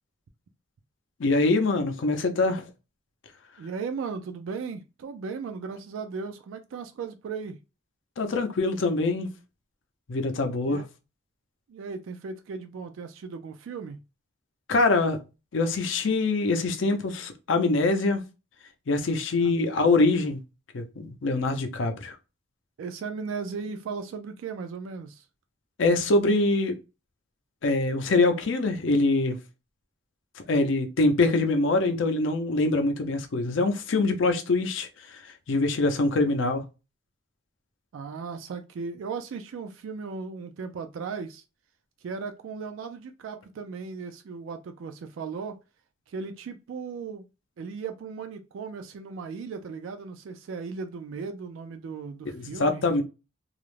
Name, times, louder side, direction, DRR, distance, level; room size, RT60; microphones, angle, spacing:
voice 1, 1.2-2.6 8.2-9.3 10.1-10.8 14.7-15.2 15.5-18.2 18.9-20.4 20.7-22.1 25.8-26.7 27.6-29.4 30.5-35.2 35.5-36.6 52.3-53.0, left 2 dB, 70° left, 0.5 m, -24 dB
voice 2, 3.6-7.6 10.6-10.9 11.7-14.0 19.4-19.6 22.8-25.3 37.9-41.4 42.0-45.6 46.1-47.3 47.6-52.9, right 5 dB, 75° right, 0.3 m, -36 dB
2.4 x 2.0 x 3.0 m
head